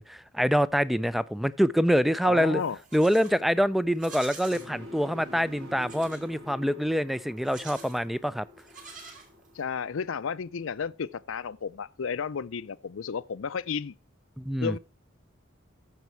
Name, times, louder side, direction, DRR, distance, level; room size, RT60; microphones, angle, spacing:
voice 1, 0.0-2.6 2.9-8.5 14.4-14.8, equal, ahead, 0.4 m, -25 dB
voice 2, 2.2-2.8 9.5-13.9 14.6-14.8, left 6 dB, 65° left, 0.5 m, -32 dB
Livestock farm animals working animals, 2.6-3.4 3.9-4.7 5.8-6.3 7.4-8.0 8.6-9.6, right 4 dB, 40° right, 3.1 m, -46 dB
sound 1, 4.5-10.5, left 1 dB, 60° right, 4.2 m, -47 dB
14.0 x 5.2 x 4.6 m
head